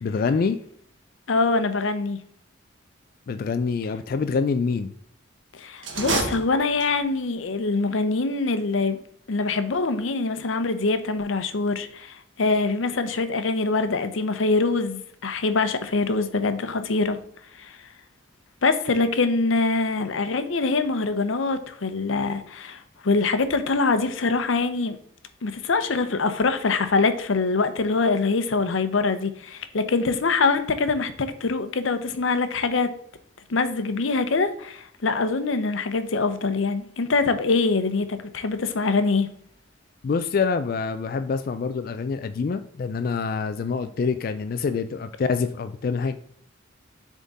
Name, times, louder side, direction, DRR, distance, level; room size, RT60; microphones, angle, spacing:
voice 1, 0.0-0.6 3.3-4.9 40.0-46.2, left 5 dB, 50° left, 0.3 m, -26 dB
voice 2, 1.3-2.2 5.6-9.0 9.3-17.2 17.6-17.8 18.6-25.0 25.4-32.9 33.5-39.3, left 3 dB, 90° left, 0.7 m, -24 dB
sound 1, 5.8-7.2, right 3 dB, 75° right, 1.3 m, -28 dB
7.2 x 3.7 x 4.0 m
head